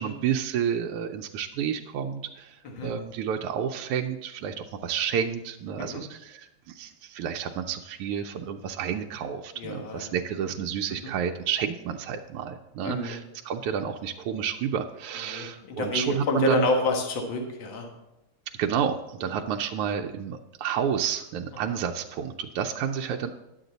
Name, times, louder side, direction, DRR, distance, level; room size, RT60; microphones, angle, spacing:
voice 1, 0.0-16.7 18.6-23.3, right 8 dB, 90° right, 3 dB, 1.5 m, -30 dB
voice 2, 9.6-10.1 12.8-13.2 15.3-17.9, left 2 dB, 60° left, 2 dB, 2.0 m, -28 dB
10.5 x 8.0 x 4.0 m, 0.91 s
omnidirectional pair, 2.4 m